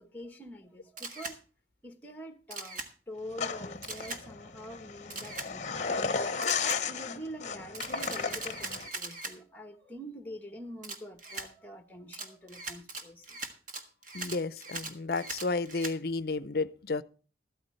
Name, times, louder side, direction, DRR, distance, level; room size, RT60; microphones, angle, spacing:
voice 1, 0.0-1.4 1.8-6.3 6.9-13.4, equal, 10° left, 1.2 m, -45 dB
Camera, 1.0-1.4 2.5-2.9 3.8-4.2 5.1-5.5 6.4-6.8 7.7-9.3 10.8-11.5 12.1-16.0, right 3 dB, 45° right, 1.5 m, -40 dB
sound 1, 3.4-8.9, left 5 dB, 40° left, 0.9 m, -34 dB
voice 2, 14.1-17.0, left 3 dB, 55° left, 0.5 m, -32 dB
14.0 x 13.0 x 3.2 m
head